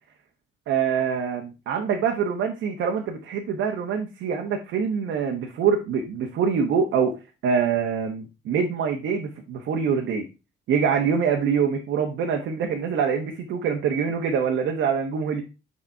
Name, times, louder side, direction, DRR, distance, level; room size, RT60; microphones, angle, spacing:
voice 1, 0.7-7.1 7.4-10.3 10.7-15.4, right 6 dB, 80° right, 2 dB, 1.1 m, -25 dB
6.3 x 4.3 x 4.4 m, 0.29 s
cardioid pair, 90°, 20 cm